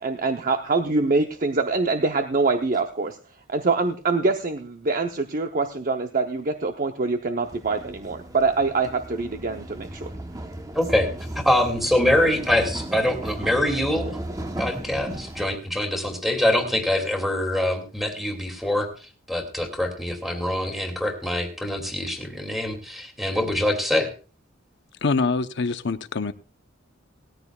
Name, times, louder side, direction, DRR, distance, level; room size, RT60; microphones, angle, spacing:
voice 1, 0.0-3.2 3.5-10.1, right 3 dB, 45° right, 0.8 m, -24 dB
sound 1, 7.4-15.6, right 1 dB, 20° right, 1.0 m, -36 dB
voice 2, 10.7-11.1 11.4-14.2 14.6-18.9 19.3-24.1, left 1 dB, ahead, 2.5 m, -24 dB
voice 3, 25.0-26.3, left 4 dB, 60° left, 0.8 m, -24 dB
19.0 x 13.5 x 2.4 m
head